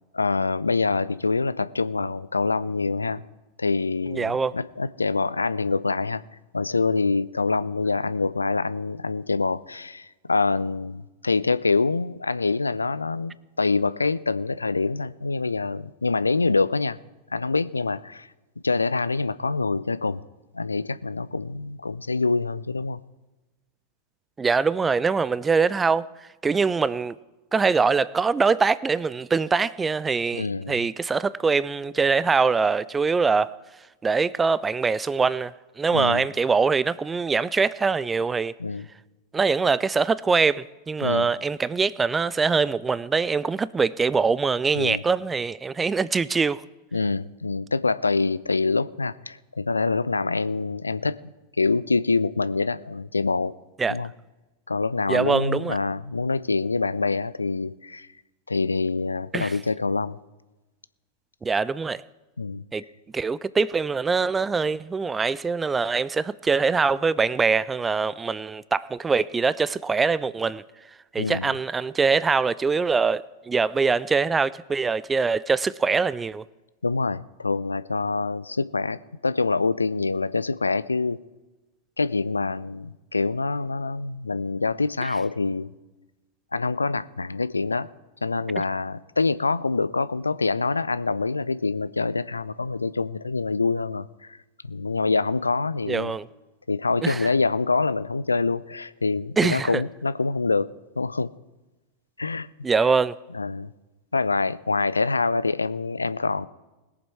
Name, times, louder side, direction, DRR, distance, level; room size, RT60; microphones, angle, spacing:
voice 1, 0.1-3.2 3.6-6.2 6.5-17.0 17.3-18.3 18.6-20.2 20.5-23.0 30.3-30.8 35.9-36.2 38.6-38.9 41.0-41.3 44.8-45.0 46.9-51.2 51.6-53.5 53.9-54.1 54.7-58.1 58.5-60.2 62.4-62.6 71.2-71.5 76.8-81.2 82.0-85.7 86.5-87.9 88.2-94.4 94.6-96.2 96.7-100.7 101.0-101.3 102.2-102.5 103.3-103.7 104.1-106.5, left 3 dB, 80° left, 0.4 m, -25 dB
voice 2, 4.1-4.5 24.4-26.1 26.4-27.2 27.5-33.5 34.0-38.5 39.3-46.6 53.8-54.0 55.1-55.8 59.3-59.5 61.4-62.0 62.7-62.8 63.1-70.6 71.1-76.4 95.9-96.3 97.0-97.3 99.4-99.8 102.6-103.1, right 4 dB, 15° right, 0.4 m, -23 dB
21.0 x 7.3 x 4.7 m
figure-of-eight pair, 90°, 0 cm